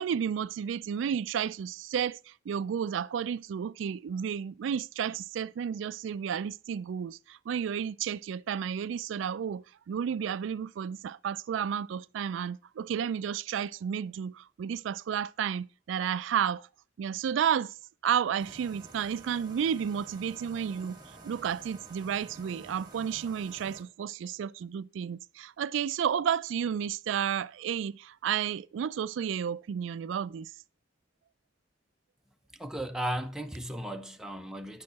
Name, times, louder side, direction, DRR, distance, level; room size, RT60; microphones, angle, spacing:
voice 1, 0.0-16.7 17.0-17.8 18.0-30.5, right 8 dB, 80° right, 0.3 m, -32 dB
sound 1, 18.4-23.8, right 2 dB, 20° right, 1.6 m, -50 dB
voice 2, 32.6-34.8, right 1 dB, 5° right, 0.7 m, -35 dB
9.6 x 6.5 x 4.1 m
head